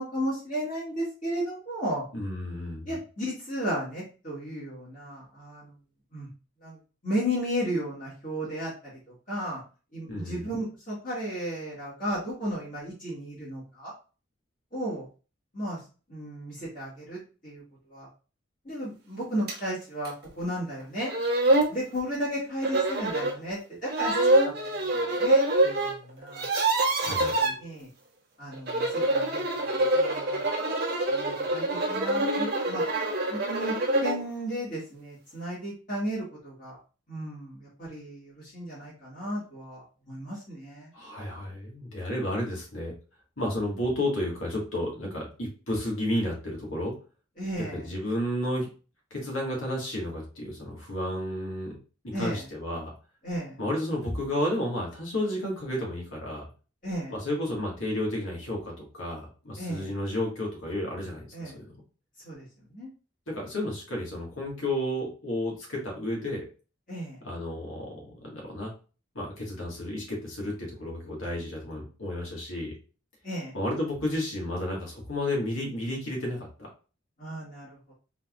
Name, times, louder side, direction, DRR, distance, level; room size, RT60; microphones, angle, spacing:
voice 1, 0.0-2.1 2.9-5.7 6.1-6.3 6.6-6.8 7.0-9.0 9.3-9.6 9.9-13.9 14.7-15.1 15.5-15.8 16.1-17.6 17.9-18.1 18.7-21.1 21.7-24.9 25.2-26.4 27.0-27.9 28.4-29.4 29.7-30.4 31.1-32.8 33.3-33.7 34.0-36.8 37.1-40.9 47.4-47.9 52.1-52.4 53.2-53.6 56.8-57.1 59.6-59.9 61.3-61.6 62.2-62.4 62.7-62.9 66.9-67.2 73.2-73.5 77.2-77.9, equal, 40° left, -7 dB, 2.0 m, -34 dB
voice 2, 2.1-3.0 10.1-10.4 27.0-27.5 40.9-42.9 43.4-46.9 47.7-48.7 49.1-51.8 52.0-52.9 53.6-56.4 57.1-61.6 63.3-66.4 67.2-68.7 69.2-72.7 73.5-76.7, left 1 dB, 80° left, -1 dB, 2.0 m, -32 dB
sound 1, 19.5-19.6 20.0-20.1 20.8-20.9 21.1-21.7 22.6-23.4 23.9-25.9 26.2-27.5 28.5-34.2, right 2 dB, 50° right, 1.0 m, -25 dB
4.1 x 3.9 x 2.6 m, 0.35 s
head